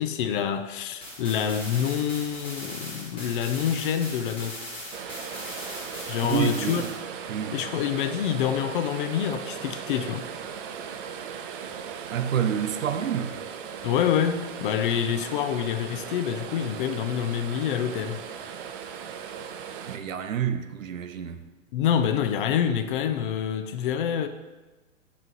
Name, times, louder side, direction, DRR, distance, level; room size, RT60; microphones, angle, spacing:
voice 1, 0.0-4.6 6.1-6.8 7.5-10.3 13.8-18.2 21.7-24.3, left 9 dB, 45° left, 0.5 m, -27 dB
sound 1, 1.0-7.0, left 1 dB, 15° left, 1.7 m, -39 dB
sound 2, 4.9-20.0, right 7 dB, 45° right, 0.5 m, -38 dB
voice 2, 6.2-6.9 7.3-7.6 12.1-13.4 19.8-21.4, right 8 dB, 90° right, 0.6 m, -28 dB
5.6 x 3.1 x 5.5 m
hypercardioid pair, 125°, 39 cm